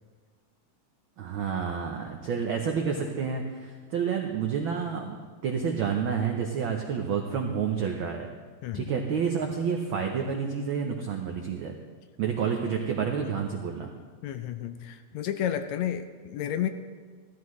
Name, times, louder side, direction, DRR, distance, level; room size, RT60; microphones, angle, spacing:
voice 1, 1.2-8.3 8.7-11.7 12.2-13.9, right 6 dB, 90° right, 2 dB, 1.1 m, -29 dB
voice 2, 14.2-16.7, left 10 dB, 80° left, 9 dB, 1.8 m, -31 dB
15.5 x 13.0 x 3.1 m, 1.5 s
omnidirectional pair, 3.3 m